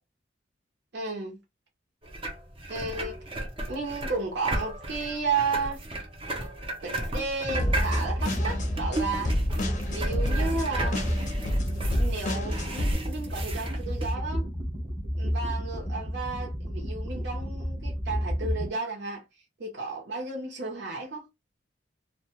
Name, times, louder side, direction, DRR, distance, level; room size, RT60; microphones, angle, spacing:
voice 1, 0.9-1.4 2.7-3.2 3.7-5.8 6.8-9.3 9.9-11.0 12.0-14.5 15.2-19.2 19.6-21.3, right 4 dB, 65° right, 0.8 m, -33 dB
sound 1, 2.0-14.1, right 1 dB, 30° right, 0.6 m, -34 dB
sound 2, 7.4-18.7, equal, 5° left, 0.8 m, -31 dB
sound 3, 7.6-12.9, left 1 dB, 45° left, 0.6 m, -30 dB
2.2 x 2.2 x 2.8 m
head